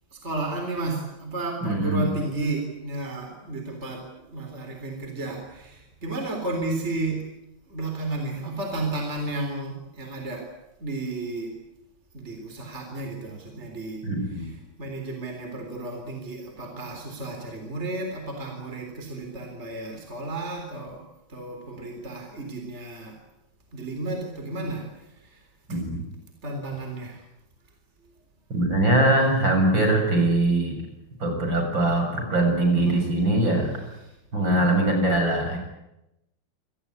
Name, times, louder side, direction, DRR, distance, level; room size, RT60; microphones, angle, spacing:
voice 1, 0.1-7.2 7.7-10.5 10.8-11.5 12.1-14.0 14.3-14.5 14.8-21.0 21.3-23.2 23.7-24.8 25.1-25.4 26.4-27.2 32.7-33.0 34.5-34.7, right 2 dB, 30° right, 4 dB, 4.1 m, -32 dB
voice 2, 1.6-2.1 14.0-14.4 25.7-26.0 28.5-30.8 31.2-33.8 34.3-35.6, right 1 dB, 60° right, 4 dB, 8.0 m, -22 dB
28.0 x 19.0 x 9.6 m, 0.89 s
omnidirectional pair, 2.3 m